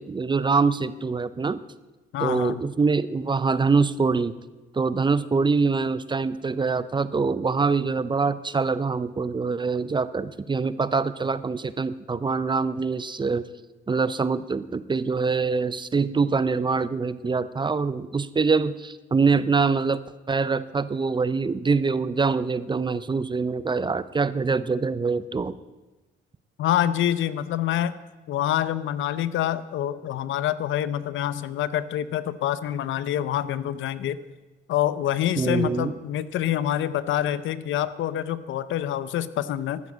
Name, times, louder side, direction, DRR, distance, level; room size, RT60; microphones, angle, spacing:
voice 1, 0.0-1.6 2.2-4.3 4.7-13.5 13.9-25.6 35.4-35.9, right 4 dB, 25° right, 16 dB, 0.5 m, -24 dB
voice 2, 2.1-2.6 26.6-28.0 28.3-34.2 34.7-39.8, left 11 dB, 75° left, 16 dB, 0.7 m, -26 dB
12.5 x 9.4 x 7.3 m, 1.2 s
cardioid pair, 90°, 20 cm